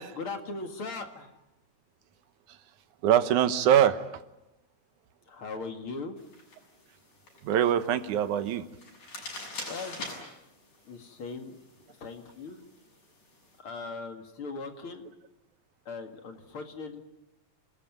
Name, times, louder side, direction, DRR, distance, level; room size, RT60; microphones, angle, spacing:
voice 1, 0.0-1.4 5.3-6.2 9.7-10.0 10.9-11.6 12.0-12.6 13.6-15.0 15.9-17.0, left 4 dB, 50° left, 5 dB, 2.7 m, -39 dB
voice 2, 3.0-4.2 7.4-8.7, right 10 dB, 90° right, 11 dB, 2.6 m, -23 dB
sound 1, 6.2-13.6, left 2 dB, 90° left, 8.3 m, -46 dB
28.5 x 19.5 x 9.4 m, 0.95 s
omnidirectional pair, 3.4 m